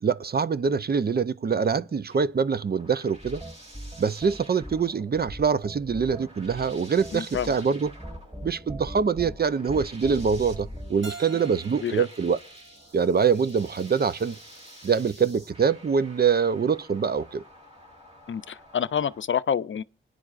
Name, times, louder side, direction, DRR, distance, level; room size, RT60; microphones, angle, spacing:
voice 1, 0.0-3.4 4.0-7.9 8.4-12.4 12.9-14.4 14.8-17.4, right 6 dB, 50° right, 0.5 m, -24 dB
sound 1, 2.1-19.2, right 1 dB, 30° right, 2.8 m, -50 dB
sound 2, 3.2-11.1, equal, 10° right, 4.1 m, -40 dB
voice 2, 7.1-7.5 11.8-12.1 18.3-19.8, left 8 dB, 70° left, 0.5 m, -27 dB
Keyboard (musical), 11.0-13.9, right 3 dB, 65° right, 1.1 m, -46 dB
27.0 x 10.0 x 2.5 m
wide cardioid pair, 80°, 21 cm